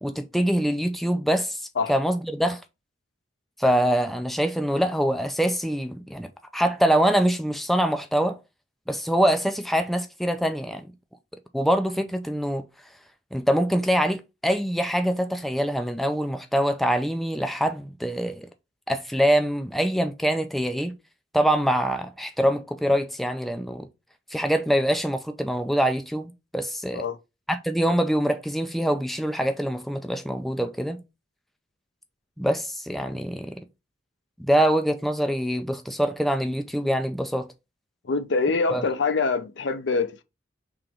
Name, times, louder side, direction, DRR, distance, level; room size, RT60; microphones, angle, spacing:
voice 1, 0.0-1.6 1.9-2.6 3.6-8.4 8.9-10.9 11.5-12.6 13.3-18.5 18.9-21.0 21.3-23.9 24.3-27.0 27.5-31.0 32.4-33.6 34.4-37.5 38.7-38.8, equal, ahead, 0.3 m, -24 dB
voice 2, 38.0-40.2, left 4 dB, 75° left, 0.6 m, -25 dB
3.7 x 3.0 x 4.5 m
head